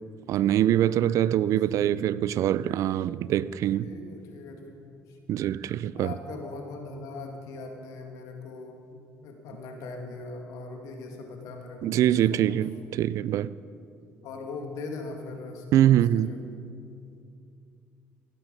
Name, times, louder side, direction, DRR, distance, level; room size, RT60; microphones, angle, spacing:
voice 1, 0.3-3.9 5.3-6.1 11.8-13.5 15.7-16.3, right 12 dB, 65° right, 0.4 m, -24 dB
voice 2, 1.2-2.0 3.8-5.2 5.9-12.6 14.2-16.4, left 3 dB, 75° left, 1.8 m, -41 dB
16.5 x 9.0 x 5.2 m
supercardioid pair, 80°, 6 cm